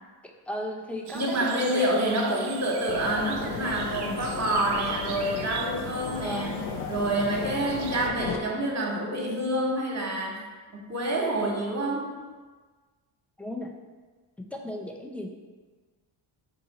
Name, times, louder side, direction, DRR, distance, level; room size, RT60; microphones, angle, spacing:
voice 1, 0.2-2.4 6.1-6.5 13.4-13.7 14.5-15.3, equal, 5° left, 1 dB, 0.5 m, -36 dB
voice 2, 1.1-6.6 6.9-10.4 10.7-12.1, right 1 dB, 30° right, -1 dB, 1.0 m, -27 dB
sound 1, 1.1-8.1, right 6 dB, 55° right, 0.5 m, -42 dB
sound 2, 2.9-8.4, left 6 dB, 70° left, 0.6 m, -35 dB
3.8 x 2.8 x 4.1 m, 1.4 s
supercardioid pair, 60°, 50 cm